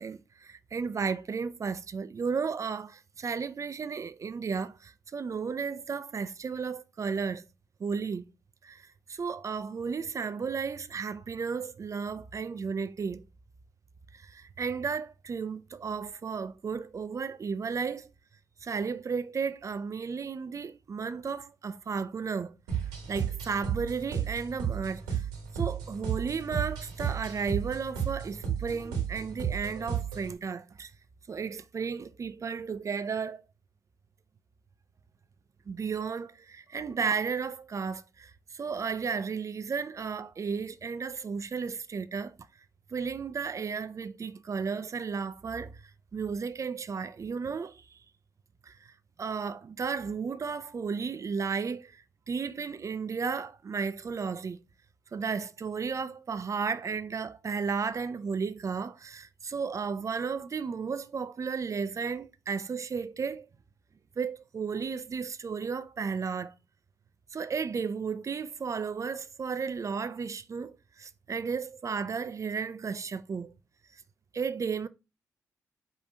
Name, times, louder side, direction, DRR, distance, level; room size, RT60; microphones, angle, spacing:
voice 1, 0.0-7.4 7.8-8.2 8.6-13.2 14.1-18.1 18.6-22.5 23.1-25.3 25.5-30.9 31.3-33.4 35.7-42.4 42.9-45.7 46.1-48.0 48.7-48.8 49.2-52.0 52.3-54.6 55.1-63.5 64.2-66.5 67.3-73.5 74.3-74.9, right 5 dB, 40° right, 0.5 m, -34 dB
sound 1, 22.7-30.3, right 8 dB, 85° right, 1.4 m, -33 dB
5.0 x 2.5 x 4.1 m
hypercardioid pair, 40°, 8 cm